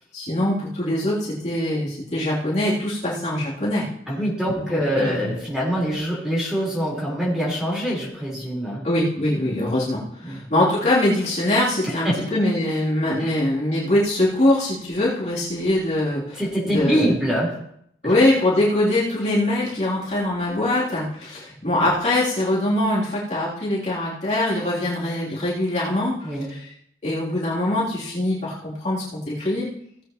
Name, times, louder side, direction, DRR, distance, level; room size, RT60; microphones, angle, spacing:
voice 1, 0.1-3.8 4.5-5.3 8.8-17.2 18.0-26.7 27.0-29.7, left 1 dB, 40° left, -8 dB, 3.3 m, -23 dB
voice 2, 4.1-8.9 10.2-10.4 12.0-12.2 13.2-13.3 16.4-17.5 18.0-18.1 26.2-26.5, equal, 5° right, -6 dB, 4.3 m, -24 dB
18.0 x 8.3 x 3.1 m, 0.72 s
head